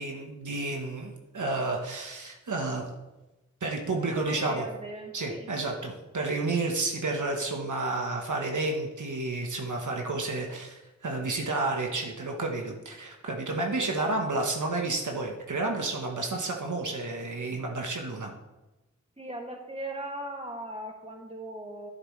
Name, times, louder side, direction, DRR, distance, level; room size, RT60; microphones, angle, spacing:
voice 1, 0.0-2.8 3.6-4.6 5.1-18.3, right 2 dB, 75° right, 1 dB, 1.2 m, -31 dB
voice 2, 3.9-5.5 19.2-21.9, right 1 dB, 20° right, 0 dB, 2.1 m, -38 dB
11.0 x 9.0 x 3.2 m, 1.0 s
wide cardioid pair, 55°, 30 cm